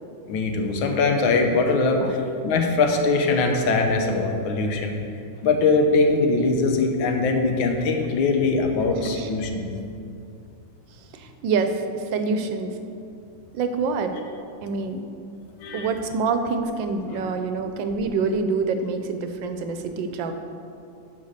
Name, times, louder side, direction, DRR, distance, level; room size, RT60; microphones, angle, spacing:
voice 1, 0.3-4.9 5.4-9.7 15.6-15.9, left 3 dB, 85° left, 4 dB, 1.7 m, -22 dB
voice 2, 8.9-9.3 11.1-12.7 13.5-14.1 14.6-15.0 15.7-20.3, right 4 dB, 75° right, 7 dB, 1.3 m, -26 dB
10.5 x 4.2 x 6.5 m, 2.6 s
omnidirectional pair, 2.2 m